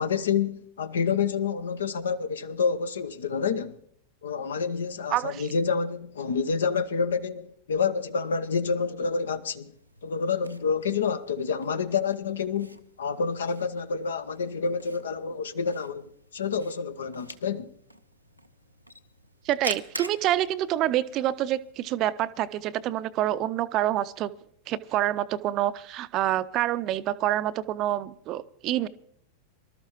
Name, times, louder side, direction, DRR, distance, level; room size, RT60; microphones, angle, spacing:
voice 1, 0.0-3.8 4.2-9.7 10.0-17.7, left 5 dB, 65° left, 0.7 m, -28 dB
voice 2, 5.1-5.5 19.4-24.3 24.7-28.9, right 13 dB, 35° right, 0.5 m, -27 dB
Camera, 9.7-21.7, right 1 dB, 90° right, 0.8 m, -46 dB
25.0 x 12.5 x 3.0 m
figure-of-eight pair, 90°, 0 cm